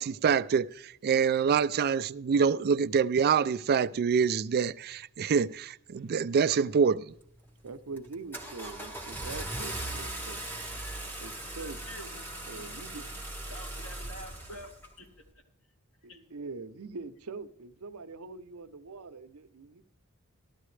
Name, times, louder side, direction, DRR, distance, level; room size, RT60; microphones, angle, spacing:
voice 1, 0.0-7.1, right 6 dB, 45° right, 0.3 m, -26 dB
Car / Engine starting, 7.2-7.5 8.0-14.9, right 1 dB, 10° left, 1.4 m, -39 dB
voice 2, 7.6-10.4 11.2-11.8 12.5-13.1 16.0-19.8, right 4 dB, 80° right, 0.7 m, -43 dB
voice 3, 11.6-13.1 13.5-15.2 16.1-16.3, equal, 80° left, 2.6 m, -48 dB
14.0 x 12.0 x 3.2 m
head